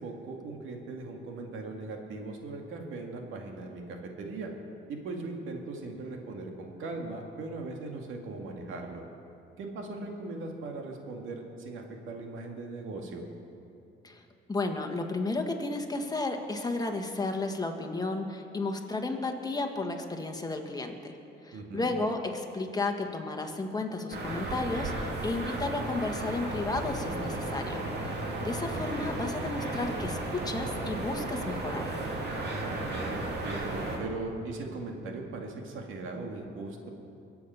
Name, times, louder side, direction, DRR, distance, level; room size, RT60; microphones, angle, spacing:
voice 1, 0.0-4.5 4.9-9.0 9.6-13.3 21.5-21.9 32.4-36.9, right 3 dB, 80° right, 2 dB, 2.1 m, -39 dB
voice 2, 14.5-21.1 21.4-28.1 28.4-31.9, left 2 dB, 20° left, 4 dB, 1.7 m, -33 dB
sound 1, 24.1-34.0, right 2 dB, 55° right, 2.6 m, -34 dB
23.0 x 8.4 x 5.7 m, 2.7 s
cardioid pair, 90°, 20 cm